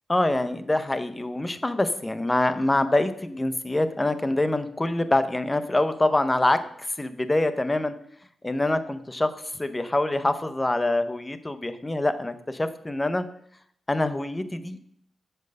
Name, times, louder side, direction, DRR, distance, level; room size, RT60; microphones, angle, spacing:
voice 1, 0.1-7.9 8.4-13.2 13.9-14.8, left 2 dB, 15° left, 11 dB, 0.6 m, -25 dB
8.3 x 4.5 x 6.5 m, 0.67 s
wide cardioid pair, 140°, 0 cm